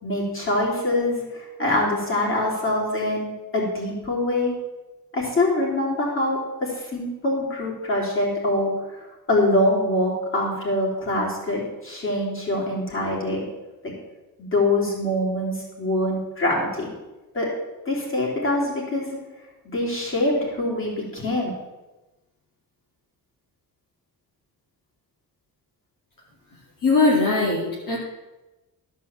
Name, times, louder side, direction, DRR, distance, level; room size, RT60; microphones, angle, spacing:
voice 1, 0.0-4.5 5.1-13.4 14.5-16.9 17.3-17.5 17.9-19.2 19.6-21.5, left 1 dB, 35° left, -4 dB, 3.7 m, -24 dB
voice 2, 26.8-28.0, left 3 dB, 55° left, -5 dB, 2.3 m, -20 dB
13.0 x 5.4 x 7.3 m, 1.1 s
wide cardioid pair, 155°, 38 cm